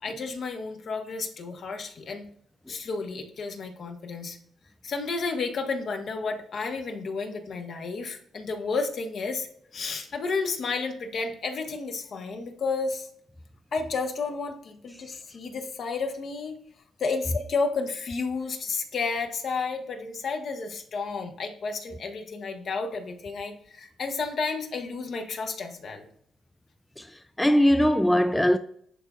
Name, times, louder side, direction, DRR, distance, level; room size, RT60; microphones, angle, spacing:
voice 1, 0.0-2.3 2.7-4.4 4.8-13.1 13.7-16.6 17.0-26.1, left 4 dB, 55° left, 1.2 m, -31 dB
voice 2, 27.0-28.6, equal, 5° left, 0.3 m, -21 dB
10.5 x 3.6 x 2.4 m
cardioid pair, 90°, 0 cm